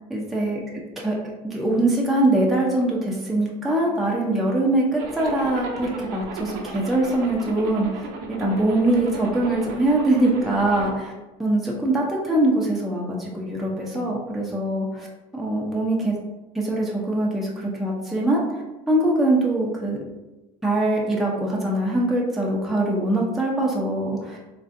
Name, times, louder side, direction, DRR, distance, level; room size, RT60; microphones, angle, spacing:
voice 1, 0.1-0.6 1.0-1.2 1.4-11.1 11.4-15.1 15.3-16.2 16.5-18.4 18.9-20.0 20.6-24.4, right 1 dB, ahead, -4 dB, 0.6 m, -23 dB
Zipper (clothing), 5.0-10.9, right 3 dB, 75° right, 0.6 m, -35 dB
3.2 x 2.5 x 2.5 m, 1.1 s
supercardioid pair, 95°, 16 cm